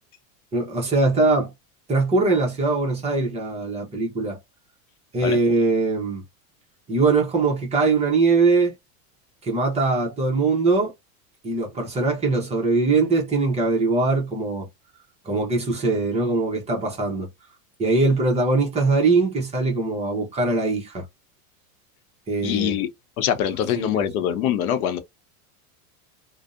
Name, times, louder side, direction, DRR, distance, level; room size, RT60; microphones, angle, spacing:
voice 1, 0.5-1.5 1.9-4.4 5.1-6.2 6.9-8.7 9.4-10.9 11.4-14.7 15.2-17.3 17.8-21.0 22.3-22.8 23.8-24.0, right 3 dB, 15° right, 0.6 m, -21 dB
voice 2, 22.4-22.9 23.2-25.0, left 9 dB, 90° left, 0.7 m, -23 dB
2.5 x 2.0 x 2.3 m
supercardioid pair, 150°, 42 cm